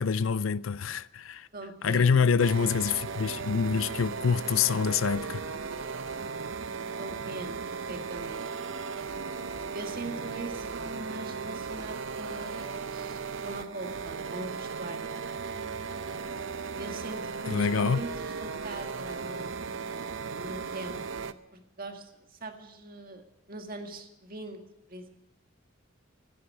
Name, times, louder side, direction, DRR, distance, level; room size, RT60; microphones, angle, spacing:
voice 1, 0.0-1.5 1.8-5.4 17.5-18.0, left 6 dB, 90° left, 0.5 m, -26 dB
voice 2, 1.5-2.3 7.0-7.6 7.9-8.5 9.7-15.3 16.8-24.6 24.9-25.1, right 2 dB, 45° right, 1.9 m, -42 dB
sound 1, 2.4-21.3, right 5 dB, 70° right, 0.7 m, -36 dB
15.0 x 10.0 x 9.3 m
head